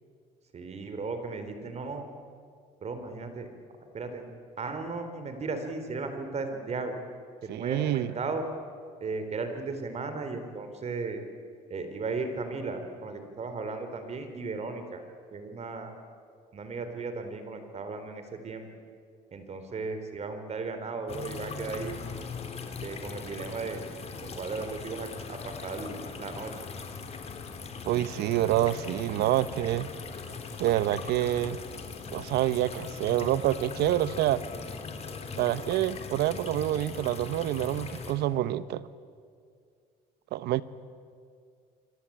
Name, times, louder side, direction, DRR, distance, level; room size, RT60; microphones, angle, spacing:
voice 1, 0.5-2.1 2.8-3.5 3.9-4.3 4.6-6.9 7.4-8.4 9.0-11.2 11.7-15.0 15.3-15.9 16.5-18.7 19.3-22.0 22.8-23.8 24.2-26.5, right 4 dB, 40° right, 7 dB, 4.0 m, -36 dB
voice 2, 7.5-8.1 27.9-29.9 30.6-31.6 32.1-34.4 35.4-38.8 40.3-40.6, right 13 dB, 80° right, 16 dB, 1.0 m, -27 dB
sound 1, 21.1-38.1, left 5 dB, 40° left, 3.5 m, -40 dB
26.0 x 25.5 x 8.8 m, 2.2 s
cardioid pair, 110°, 17 cm